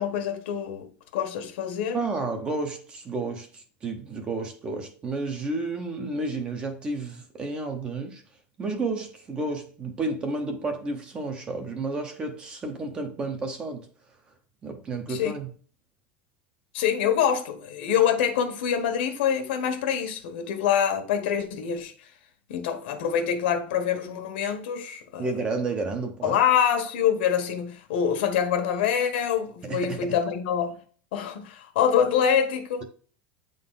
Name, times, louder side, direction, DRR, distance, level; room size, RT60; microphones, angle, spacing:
voice 1, 0.0-2.0 15.1-15.3 16.7-21.9 22.5-25.3 26.2-30.8 31.1-32.8, left 8 dB, 75° left, 1.4 m, -25 dB
voice 2, 1.9-8.2 8.6-13.9 14.6-15.5 25.2-26.4 29.6-30.1, right 3 dB, 15° right, 0.8 m, -31 dB
8.7 x 3.9 x 3.9 m
supercardioid pair, 180°, 6 cm